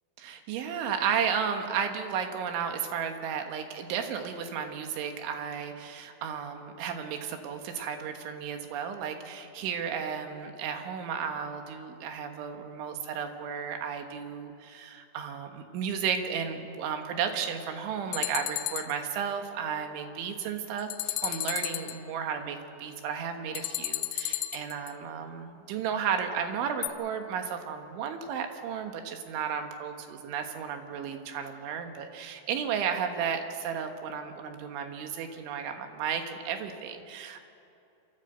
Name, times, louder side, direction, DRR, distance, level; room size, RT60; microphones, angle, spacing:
voice 1, 0.2-37.5, right 7 dB, 75° right, 5 dB, 3.7 m, -33 dB
sound 1, 18.1-18.9 20.8-22.0 23.6-24.9 26.8-26.9, left 16 dB, 80° left, 2.6 m, -33 dB
27.0 x 14.0 x 7.9 m, 2.7 s
omnidirectional pair, 5.7 m